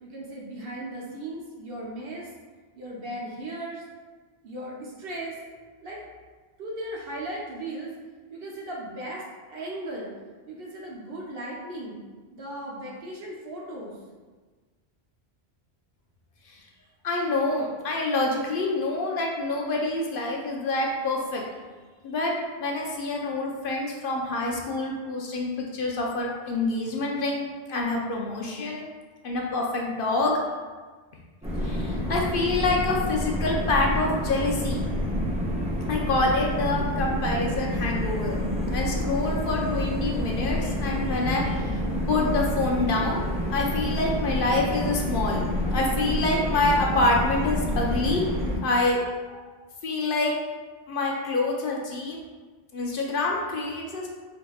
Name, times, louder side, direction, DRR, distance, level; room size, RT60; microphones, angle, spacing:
voice 1, 0.0-2.3 2.7-3.8 4.4-5.5 5.8-6.0 6.6-7.9 8.3-9.2 9.5-10.1 10.5-12.0 12.3-13.9, right 1 dB, 65° right, -4 dB, 0.9 m, -37 dB
voice 2, 17.0-21.4 22.0-22.3 22.6-28.9 29.2-30.3 31.6-34.8 35.9-38.4 38.7-41.7 42.1-48.2 48.6-49.0 49.3-49.6 49.8-50.3 50.9-52.2 52.7-54.1, left 2 dB, 65° left, -1 dB, 0.7 m, -26 dB
sound 1, 31.4-48.6, left 1 dB, 10° right, 0.5 m, -28 dB
4.6 x 2.6 x 2.3 m, 1.4 s
omnidirectional pair, 1.1 m